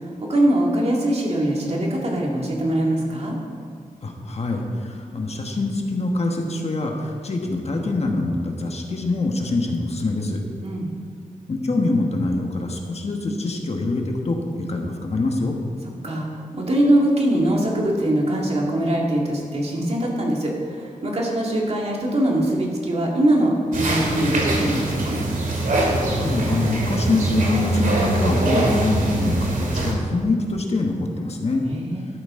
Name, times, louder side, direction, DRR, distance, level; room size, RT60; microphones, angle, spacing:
voice 1, 0.0-3.4 10.6-10.9 16.0-25.2 31.7-32.1, right 1 dB, 50° right, -2 dB, 2.1 m, -22 dB
voice 2, 4.0-10.4 11.5-15.5 26.1-31.6, left 2 dB, 50° left, 2 dB, 1.3 m, -24 dB
sound 1, 23.7-29.9, right 2 dB, 75° right, 2.2 m, -23 dB
12.5 x 11.0 x 3.7 m, 2.1 s
wide cardioid pair, 135°, 14 cm